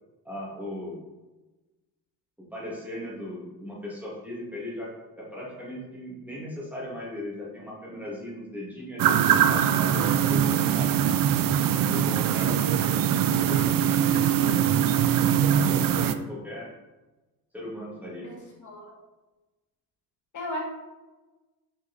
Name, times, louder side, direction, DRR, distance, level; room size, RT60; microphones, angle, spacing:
voice 1, 0.2-1.0 2.5-4.9 5.2-9.2 9.4-10.9 11.8-16.7 17.5-18.3, left 1 dB, 5° right, -6 dB, 2.2 m, -38 dB
sound 1, 9.0-16.1, right 9 dB, 60° right, 0.5 m, -22 dB
voice 2, 18.6-18.9 20.3-20.6, left 1 dB, 50° left, -3 dB, 2.2 m, -35 dB
7.5 x 4.6 x 4.1 m, 1.1 s
cardioid pair, 130°, 38 cm